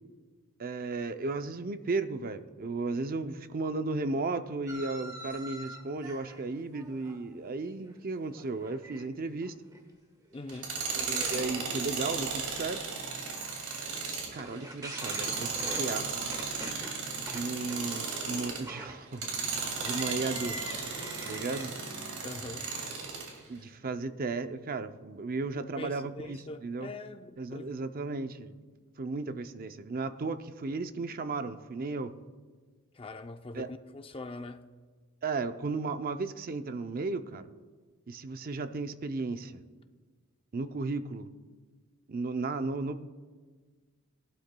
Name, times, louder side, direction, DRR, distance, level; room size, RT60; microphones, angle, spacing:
voice 1, 0.6-9.6 11.0-12.8 14.3-16.1 17.3-20.6 21.3-21.7 23.5-26.9 27.4-28.6 29.0-32.1 33.5-33.7 35.2-37.4 38.1-39.6 40.5-41.3 42.1-43.0, right 3 dB, 40° right, 0.5 m, -35 dB
sound 1, 4.7-8.0 8.3-9.0 9.4-9.8 10.2-10.3 10.8-21.6, right 1 dB, 15° right, 1.3 m, -45 dB
voice 2, 10.3-10.7 22.2-22.7 25.5-27.7 32.9-34.6, left 2 dB, 25° left, 0.5 m, -43 dB
Tools, 10.5-18.7 19.1-23.3, right 4 dB, 90° right, 2.3 m, -35 dB
19.5 x 11.5 x 2.2 m
head